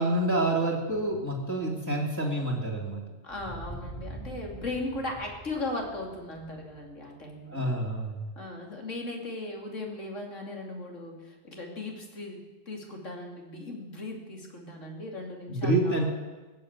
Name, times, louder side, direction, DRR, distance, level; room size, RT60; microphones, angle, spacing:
voice 1, 0.0-3.0 7.5-8.3 15.5-16.1, right 1 dB, 15° left, -4 dB, 2.6 m, -27 dB
voice 2, 3.2-7.7 8.4-16.1, left 2 dB, 70° left, 1 dB, 2.9 m, -37 dB
sound 1, 3.3-7.9, right 1 dB, 35° left, 3.2 m, -44 dB
18.5 x 7.8 x 8.2 m, 1.2 s
omnidirectional pair, 1.3 m